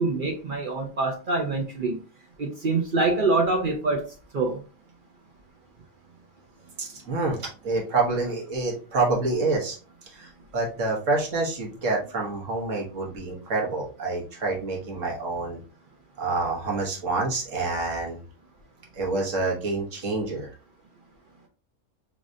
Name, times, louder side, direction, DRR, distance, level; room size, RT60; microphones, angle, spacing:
voice 1, 0.0-2.0 2.4-4.0 4.3-4.6, right 3 dB, 50° right, 2 dB, 0.7 m, -25 dB
voice 2, 6.8-9.8 10.1-15.6 16.2-18.2 18.9-20.5, right 3 dB, 75° right, -1 dB, 1.5 m, -27 dB
3.7 x 3.3 x 2.5 m, 0.36 s
omnidirectional pair, 1.3 m